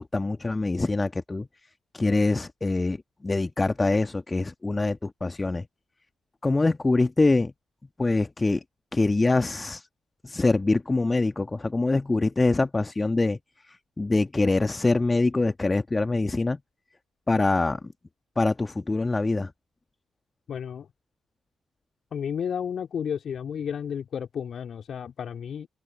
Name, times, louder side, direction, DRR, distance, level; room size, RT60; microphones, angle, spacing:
voice 1, 0.0-1.5 1.9-3.0 3.2-5.6 6.4-7.5 8.0-8.6 8.9-9.9 10.2-13.4 14.0-16.6 17.3-17.8 18.4-19.5, left 3 dB, 25° left, 1.7 m, -24 dB
voice 2, 20.5-20.9 22.1-25.7, left 8 dB, 55° left, 3.2 m, -32 dB
hypercardioid pair, 40°, 0 cm